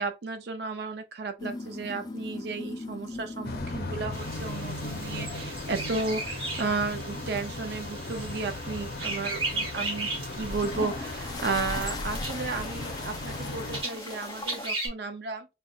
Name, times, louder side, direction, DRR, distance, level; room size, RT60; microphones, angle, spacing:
voice 1, 0.0-15.5, right 4 dB, 65° right, 0.5 m, -33 dB
sound 1, 1.4-4.6 5.0-5.3 6.9-8.5 8.9-9.3 10.3-14.7, left 3 dB, 20° left, 0.3 m, -40 dB
sound 2, 3.4-13.8, left 2 dB, 60° left, 0.6 m, -37 dB
sound 3, 4.1-14.9, right 3 dB, 30° right, 1.0 m, -37 dB
5.1 x 2.3 x 2.3 m
head